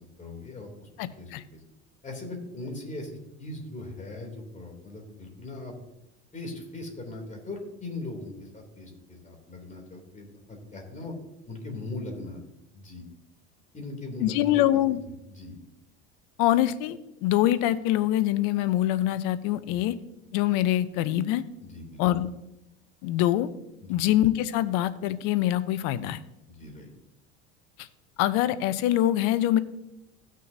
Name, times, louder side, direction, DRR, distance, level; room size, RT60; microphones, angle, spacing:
voice 1, 0.2-0.9 1.2-1.6 2.0-5.8 6.3-11.1 11.5-12.4 12.7-13.0 13.7-14.8 15.3-15.5 19.7-19.8 21.6-22.0 23.8-24.0 26.5-26.9, left 2 dB, 20° left, 2 dB, 3.0 m, -40 dB
voice 2, 1.0-1.4 14.2-15.0 16.4-20.0 20.3-21.4 22.0-22.3 23.0-23.5 23.9-26.2 27.8-27.9 28.2-29.6, left 13 dB, 65° left, 14 dB, 0.8 m, -24 dB
16.0 x 6.4 x 2.7 m, 0.88 s
hypercardioid pair, 85°, 34 cm